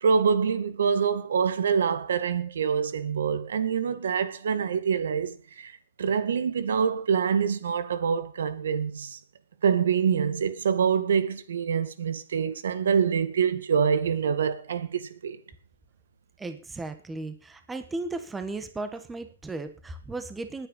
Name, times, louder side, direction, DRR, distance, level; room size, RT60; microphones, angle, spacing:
voice 1, 0.0-5.7 6.0-9.2 9.6-15.4, right 6 dB, 85° right, 1.9 m, -25 dB
voice 2, 16.4-20.7, right 2 dB, 10° right, 1.4 m, -35 dB
20.0 x 9.1 x 5.5 m
hypercardioid pair, 160°, 0 cm